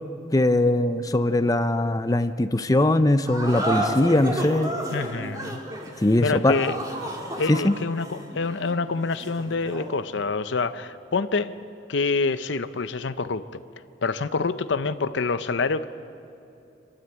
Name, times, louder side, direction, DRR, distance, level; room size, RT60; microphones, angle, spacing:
voice 1, 0.3-4.8 6.0-6.5 7.5-7.7, left 1 dB, 20° left, 10 dB, 0.6 m, -21 dB
sound 1, 3.2-10.0, right 1 dB, 20° right, 2.1 m, -32 dB
voice 2, 4.9-5.6 6.2-6.8 7.4-11.5 11.9-13.6 14.0-15.9, left 4 dB, 75° left, 12 dB, 0.6 m, -26 dB
26.0 x 12.5 x 8.0 m, 2.7 s
head